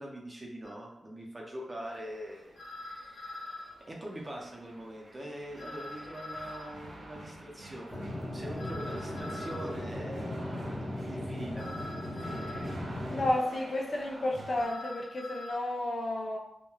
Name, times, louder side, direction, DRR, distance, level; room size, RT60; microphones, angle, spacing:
voice 1, 0.0-8.0 8.3-11.7 12.1-12.6, right 1 dB, 25° right, -2 dB, 0.5 m, -43 dB
sound 1, 0.6-0.7 2.6-3.7 5.6-6.7 8.6-9.7 11.6-12.7 14.6-15.5, left 2 dB, 70° left, 0.9 m, -43 dB
sound 2, 1.8-14.7, right 2 dB, 80° right, 0.5 m, -50 dB
sound 3, 7.9-13.3, left 1 dB, 10° left, 0.7 m, -37 dB
voice 2, 13.1-16.4, left 1 dB, 45° left, -2 dB, 0.4 m, -31 dB
3.1 x 2.1 x 2.3 m, 0.81 s
wide cardioid pair, 135°, 0 cm